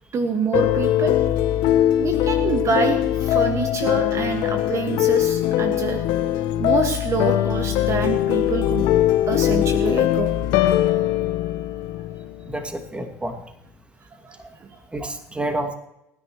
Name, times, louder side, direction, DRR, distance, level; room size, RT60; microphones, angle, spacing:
voice 1, 0.1-1.2 2.0-6.3 6.6-8.9 9.3-10.3 14.2-14.8, right 4 dB, 40° right, 5 dB, 1.8 m, -26 dB
sound 1, 0.5-12.7, left 12 dB, 70° left, 1.2 m, -21 dB
voice 2, 12.5-13.3 14.9-15.7, right 1 dB, 15° right, 5 dB, 2.4 m, -29 dB
30.0 x 10.5 x 3.2 m, 0.86 s
hypercardioid pair, 70°, 7 cm